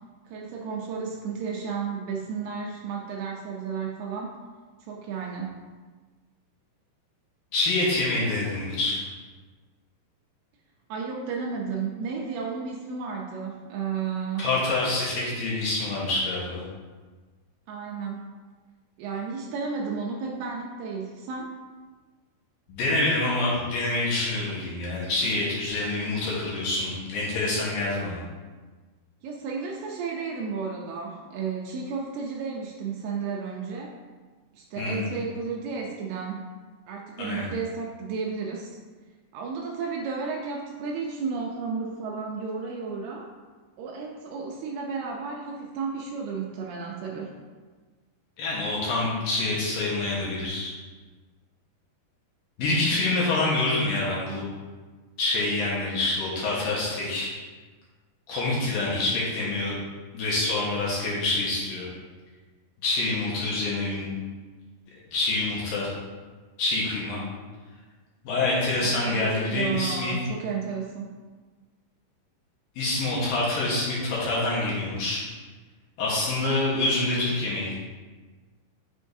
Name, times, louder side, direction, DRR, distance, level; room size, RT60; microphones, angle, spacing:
voice 1, 0.3-4.4 4.9-5.6 10.9-14.5 17.7-18.3 19.0-21.6 29.2-34.0 34.5-36.5 36.9-38.8 39.3-43.3 43.8-47.3 68.8-71.1, right 5 dB, 80° right, 0 dB, 2.4 m, -33 dB
voice 2, 7.5-9.0 14.4-16.6 22.7-28.2 34.8-35.0 37.2-37.5 48.4-50.7 52.6-54.5 55.2-57.3 58.3-59.8 60.1-61.9 62.8-64.1 65.1-65.9 66.6-67.2 68.2-70.2 72.8-75.2 76.0-77.7, left 2 dB, 65° left, -5 dB, 2.6 m, -26 dB
9.1 x 6.4 x 2.7 m, 1.4 s
omnidirectional pair, 5.0 m